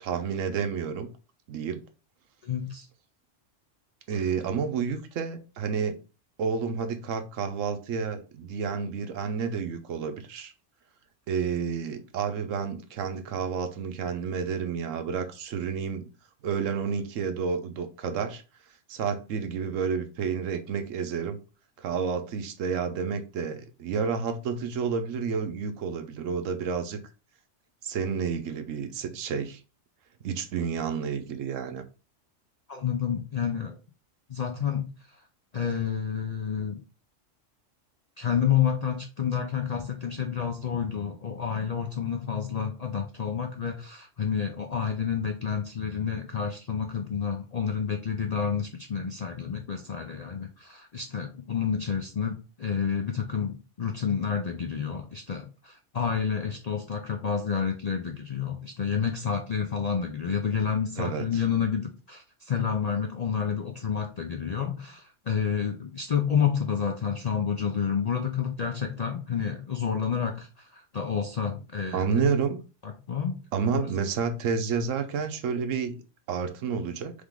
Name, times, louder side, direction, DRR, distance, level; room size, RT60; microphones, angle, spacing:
voice 1, 0.0-1.1 1.5-1.8 4.1-6.0 6.4-10.5 11.3-16.0 16.4-18.4 18.9-21.4 21.8-27.0 27.8-29.6 30.2-31.8 61.0-61.4 71.9-72.6 73.5-76.0 76.3-77.1, right 6 dB, 85° right, 1.1 m, -30 dB
voice 2, 2.4-2.9 32.7-33.8 34.3-34.9 35.5-36.8 38.2-72.2 72.8-73.4, left 7 dB, 60° left, 0.4 m, -29 dB
3.7 x 3.4 x 3.6 m
omnidirectional pair, 1.3 m